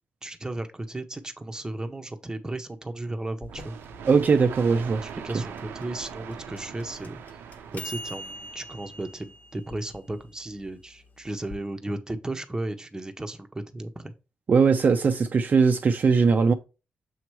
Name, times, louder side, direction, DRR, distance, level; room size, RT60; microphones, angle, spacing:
voice 1, 0.2-3.8 5.0-7.2 7.7-14.1, right 2 dB, 15° right, 0.9 m, -35 dB
sound 1, 3.4-11.6, equal, 40° left, 1.3 m, -44 dB
sound 2, 3.5-9.0, right 7 dB, 90° right, 0.7 m, -41 dB
voice 2, 4.0-5.0 5.3-5.4 14.5-16.5, right 5 dB, 50° right, 0.6 m, -20 dB
7.1 x 3.0 x 4.7 m
cardioid pair, 75°, 4 cm